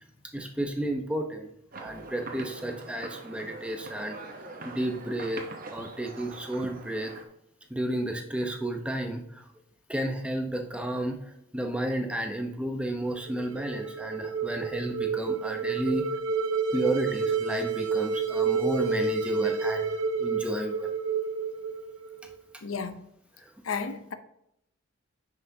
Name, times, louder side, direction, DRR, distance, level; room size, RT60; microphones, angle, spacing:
voice 1, 0.3-1.5 1.8-4.2 4.6-5.4 5.7-7.2 7.7-9.4 9.9-16.1 16.7-20.9 23.4-23.5, right 1 dB, 5° right, 0.7 m, -32 dB
sound 1, 1.7-7.2, right 3 dB, 40° right, 0.8 m, -43 dB
sound 2, 13.1-22.3, right 5 dB, 75° right, 0.7 m, -29 dB
voice 2, 22.6-23.0 23.6-24.1, left 5 dB, 80° left, 0.6 m, -33 dB
9.7 x 5.8 x 2.7 m
head